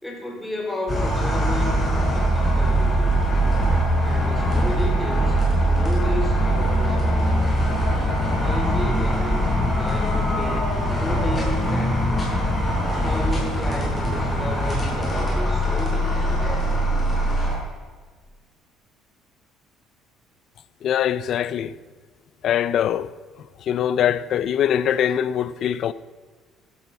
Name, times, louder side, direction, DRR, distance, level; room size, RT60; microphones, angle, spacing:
voice 1, 0.0-1.8 2.0-3.3 4.0-7.4 8.4-12.2 13.0-16.1, left 1 dB, 5° left, 4.3 m, -32 dB
sound 1, 0.9-17.5, equal, 25° left, 5.6 m, -22 dB
voice 2, 20.8-21.7 22.4-23.1 23.6-25.9, left 9 dB, 55° left, 0.7 m, -22 dB
15.5 x 12.0 x 6.1 m
cardioid pair, 115°, 0 cm